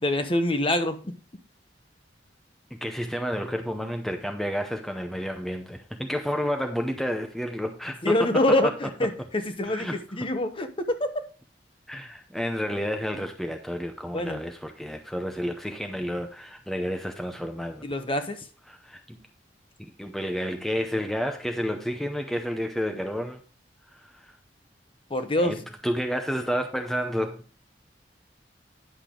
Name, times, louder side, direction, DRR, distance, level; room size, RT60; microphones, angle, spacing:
voice 1, 0.0-1.0 8.0-11.1 14.1-14.4 17.8-18.4 25.1-25.6, left 1 dB, 30° left, 1.0 m, -25 dB
voice 2, 2.7-8.4 9.6-10.0 11.9-17.9 18.7-19.2 19.8-23.4 23.9-24.4 25.3-27.4, equal, ahead, 0.6 m, -30 dB
10.0 x 6.6 x 3.7 m
head